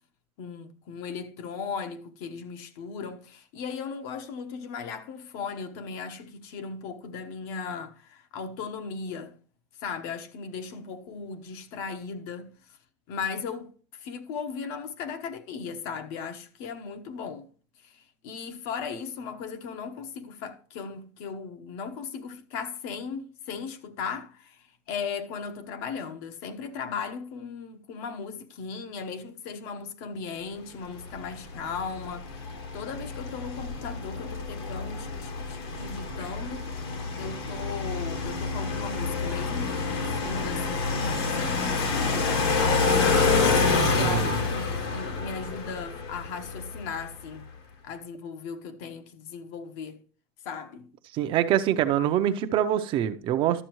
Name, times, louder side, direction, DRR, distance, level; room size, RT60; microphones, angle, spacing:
voice 1, 0.4-9.3 9.8-12.6 13.1-17.5 17.8-32.4 32.7-36.7 37.2-43.4 43.9-47.5 47.8-50.0 50.4-50.9, left 5 dB, 65° left, 1.1 m, -37 dB
sound 1, 31.0-47.1, left 4 dB, 85° left, 2.6 m, -28 dB
voice 2, 44.0-44.3 51.1-53.6, right 11 dB, 40° right, 0.6 m, -24 dB
12.0 x 7.1 x 3.1 m
supercardioid pair, 150°, 13 cm